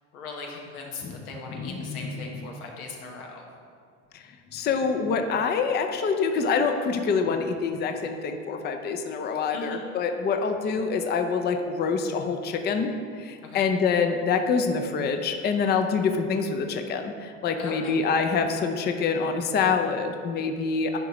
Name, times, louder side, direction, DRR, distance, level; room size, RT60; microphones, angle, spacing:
voice 1, 0.1-3.4 9.5-9.9 13.4-13.6 17.6-18.0, left 3 dB, 90° left, 0 dB, 1.2 m, -39 dB
voice 2, 1.5-2.3 4.5-12.9 13.2-21.0, left 5 dB, 25° left, 6 dB, 0.5 m, -26 dB
9.9 x 4.7 x 3.0 m, 2.2 s
hypercardioid pair, 90°, 43 cm